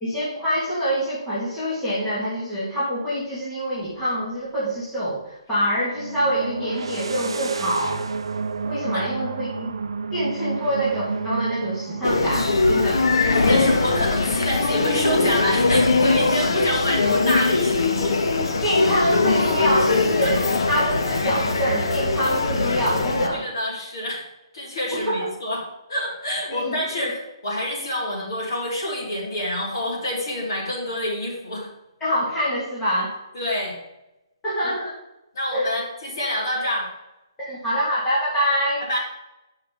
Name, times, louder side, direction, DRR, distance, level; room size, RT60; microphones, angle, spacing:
voice 1, 0.0-8.1 8.6-9.7 10.1-13.0 18.6-23.4 24.9-25.3 26.5-27.1 32.0-33.2 34.4-34.9 35.5-35.7 37.4-38.8, equal, 5° left, -11 dB, 1.3 m, -25 dB
sound 1, 3.8-3.9 5.9-14.2, right 4 dB, 65° right, 0.5 m, -31 dB
sound 2, 12.0-23.3, left 3 dB, 65° left, 1.0 m, -21 dB
voice 2, 13.5-18.1 20.2-20.3 23.3-24.2 24.5-25.6 25.9-27.1 27.4-31.7 33.3-33.8 35.3-36.8 38.8-39.0, left 1 dB, 45° left, -5 dB, 3.0 m, -27 dB
9.7 x 5.6 x 3.5 m, 0.94 s
hypercardioid pair, 180°, 3 cm